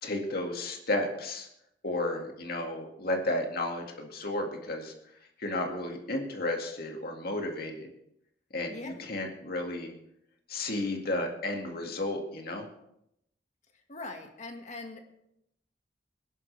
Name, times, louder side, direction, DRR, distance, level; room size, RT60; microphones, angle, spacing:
voice 1, 0.0-1.5 1.8-4.9 5.4-7.9 8.5-10.0 10.5-12.7, left 1 dB, 55° left, 2 dB, 2.1 m, -33 dB
voice 2, 8.7-9.0 13.9-15.0, left 2 dB, 40° left, 4 dB, 1.8 m, -41 dB
20.5 x 11.0 x 3.4 m, 0.78 s
head